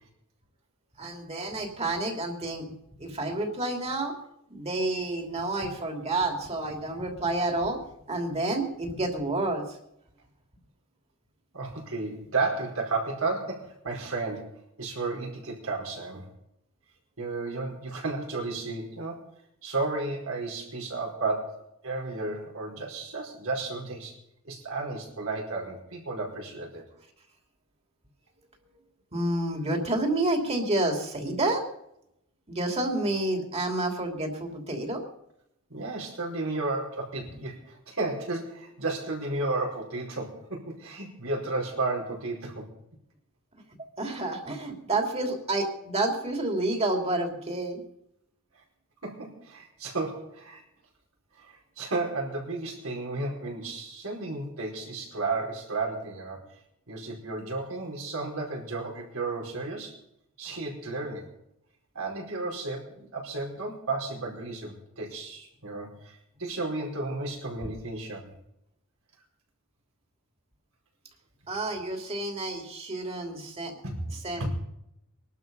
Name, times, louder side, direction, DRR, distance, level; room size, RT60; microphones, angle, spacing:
voice 1, 1.0-2.6 3.0-4.2 4.5-7.8 8.1-9.6 29.1-31.6 32.5-35.0 44.0-47.8 71.5-73.7 74.2-74.5, right 2 dB, 30° right, 3 dB, 2.9 m, -29 dB
voice 2, 11.5-16.3 17.2-19.2 19.6-24.1 24.4-26.8 35.7-42.6 49.0-50.6 51.4-56.4 56.9-59.9 60.4-61.3 61.9-68.2 73.8-74.1 74.3-74.5, right 3 dB, 70° right, 0 dB, 4.9 m, -33 dB
22.0 x 12.0 x 5.4 m, 0.80 s
head